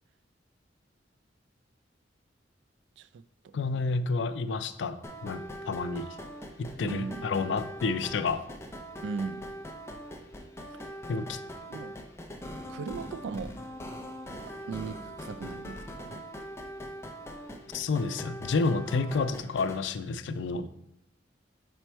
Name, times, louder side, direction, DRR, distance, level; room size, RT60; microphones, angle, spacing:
voice 1, 3.0-3.6 6.8-7.3 9.0-9.4 10.7-11.0 11.7-12.0 12.7-13.6 14.5-16.3, right 5 dB, 85° right, 15 dB, 0.3 m, -38 dB
voice 2, 3.5-6.1 6.6-8.4 11.1-11.4 17.7-20.7, left 4 dB, 85° left, 12 dB, 0.4 m, -30 dB
sound 1, 5.0-19.8, equal, 15° left, 0.5 m, -42 dB
5.1 x 4.6 x 4.4 m, 0.82 s
head